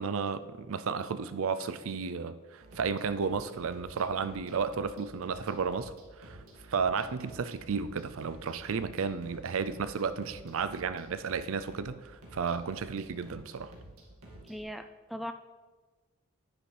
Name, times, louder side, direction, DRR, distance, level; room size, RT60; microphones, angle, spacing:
voice 1, 0.0-6.4 6.7-13.7, right 5 dB, 65° right, 0.5 m, -33 dB
sound 1, 2.6-14.6, right 1 dB, 90° right, 2.1 m, -51 dB
voice 2, 14.4-15.3, equal, ahead, 0.3 m, -39 dB
10.0 x 9.8 x 3.3 m
head